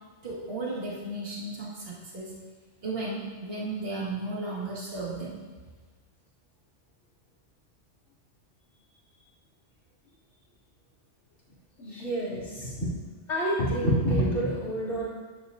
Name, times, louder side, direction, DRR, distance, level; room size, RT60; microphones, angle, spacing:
voice 1, 0.2-2.3 2.8-5.3, right 2 dB, 50° right, -6 dB, 2.4 m, -34 dB
voice 2, 11.8-12.9 13.3-15.1, right 1 dB, 65° left, -9 dB, 3.5 m, -27 dB
13.0 x 11.0 x 2.8 m, 1.4 s
omnidirectional pair, 1.3 m